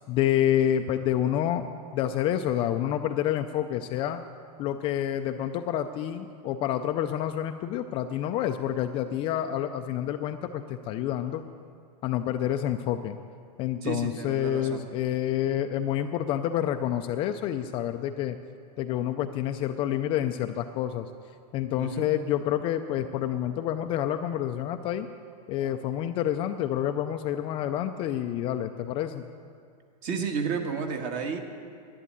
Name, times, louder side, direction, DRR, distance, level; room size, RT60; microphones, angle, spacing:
voice 1, 0.1-1.7 1.9-4.2 4.6-11.4 12.0-13.2 13.6-18.4 18.8-21.1 21.5-25.1 25.5-29.2, left 11 dB, 25° left, 7 dB, 0.4 m, -28 dB
voice 2, 13.8-14.8 21.8-22.1 30.0-31.4, right 5 dB, 40° right, 4 dB, 1.6 m, -31 dB
11.0 x 11.0 x 8.8 m, 2.3 s
supercardioid pair, 150°, 21 cm